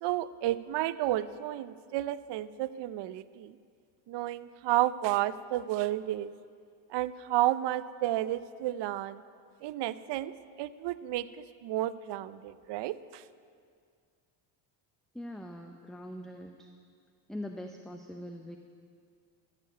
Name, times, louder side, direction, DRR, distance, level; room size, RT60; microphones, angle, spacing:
voice 1, 0.0-3.6 4.1-6.3 6.9-9.2 9.6-10.3 10.6-11.3 11.6-13.2, right 14 dB, 55° right, 15 dB, 0.6 m, -31 dB
voice 2, 15.1-16.7 17.3-18.6, left 1 dB, ahead, 4 dB, 0.6 m, -42 dB
13.0 x 7.0 x 9.9 m, 2.2 s
supercardioid pair, 95°, 49 cm